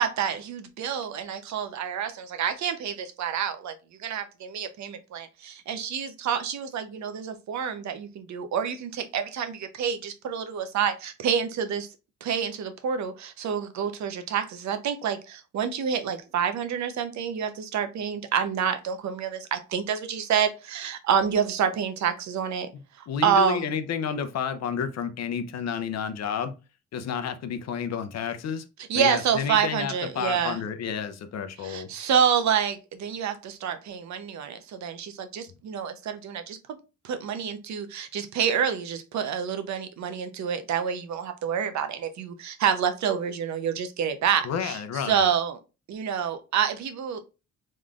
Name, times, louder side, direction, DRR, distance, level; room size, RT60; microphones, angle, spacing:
voice 1, 0.0-3.7 4.0-11.9 12.2-22.7 23.2-23.7 28.9-30.6 31.6-36.6 37.0-44.8 45.0-45.6 45.9-47.2, right 8 dB, 65° right, 0.8 m, -28 dB
voice 2, 23.1-26.5 26.9-28.6 28.9-31.9 44.4-45.3, left 7 dB, 60° left, 0.7 m, -30 dB
3.7 x 3.2 x 2.4 m
cardioid pair, 90°, 30 cm